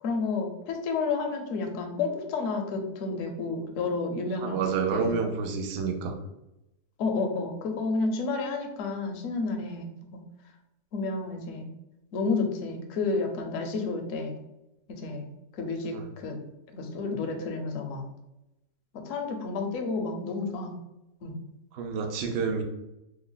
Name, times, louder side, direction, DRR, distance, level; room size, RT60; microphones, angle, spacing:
voice 1, 0.0-4.6 4.9-5.2 7.0-9.9 10.9-11.7 12.1-14.3 14.9-15.3 15.5-16.4 16.7-18.1 18.9-20.7 21.2-21.4, left 3 dB, 65° left, 3 dB, 0.8 m, -30 dB
voice 2, 4.4-6.2 15.9-16.0 21.7-22.6, right 5 dB, 85° right, 4 dB, 0.5 m, -29 dB
3.3 x 2.1 x 3.8 m, 0.92 s
omnidirectional pair, 1.7 m